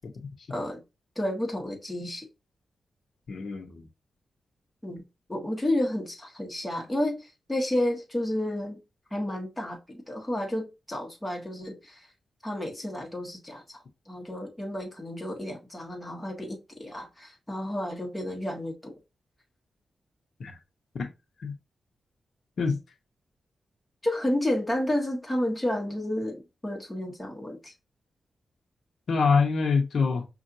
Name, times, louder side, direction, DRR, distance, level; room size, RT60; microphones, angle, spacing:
voice 1, 0.5-0.8 1.1-2.3 4.8-5.0 5.3-8.8 9.1-12.1 12.4-18.9 24.0-27.7, left 1 dB, 10° left, 1.3 m, -31 dB
voice 2, 3.3-3.9 20.4-20.6 21.0-21.1 21.4-21.6 22.6-22.8 29.1-30.3, left 5 dB, 65° left, 0.8 m, -25 dB
5.4 x 2.5 x 2.6 m
wide cardioid pair, 120°, 0 cm